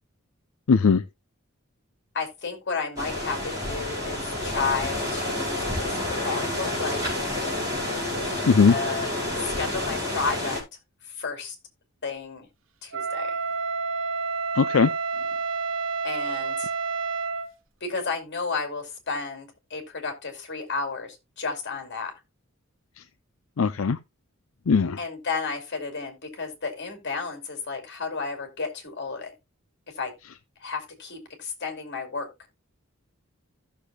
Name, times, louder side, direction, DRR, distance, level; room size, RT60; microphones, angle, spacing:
voice 1, 0.7-1.0 8.5-8.7 14.6-14.9 23.6-24.0 24.7-25.0, left 5 dB, 80° left, 0.5 m, -19 dB
voice 2, 2.1-7.5 8.2-10.6 11.2-11.5 12.0-12.5 12.8-13.4 16.0-16.7 17.8-22.1 25.0-29.3 30.0-30.1 30.6-32.3, left 4 dB, 55° left, 2.7 m, -32 dB
sound 1, 3.0-10.6, left 1 dB, 20° right, 5.3 m, -29 dB
Wind instrument woodwind instrument, 12.9-17.5, right 4 dB, 70° right, 1.0 m, -29 dB
15.5 x 6.7 x 2.3 m
head